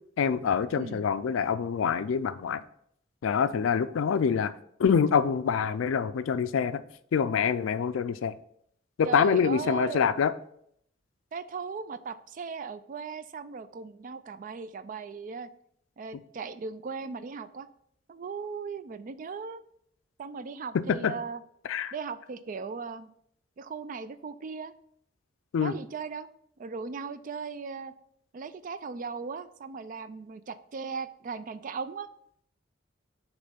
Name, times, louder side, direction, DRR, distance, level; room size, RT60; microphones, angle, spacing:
voice 1, 0.2-2.6 3.2-4.5 4.8-6.8 7.1-8.3 9.0-10.3 20.9-21.1 21.7-21.9 25.5-25.7, left 6 dB, 85° left, 13 dB, 0.4 m, -25 dB
voice 2, 9.0-10.1 11.3-15.5 16.0-17.7 18.1-19.6 20.2-21.4 21.9-23.1 23.6-24.7 25.6-26.3 26.6-27.9 28.3-32.1, right 5 dB, 45° right, 13 dB, 0.3 m, -37 dB
6.6 x 3.1 x 5.2 m, 0.69 s
head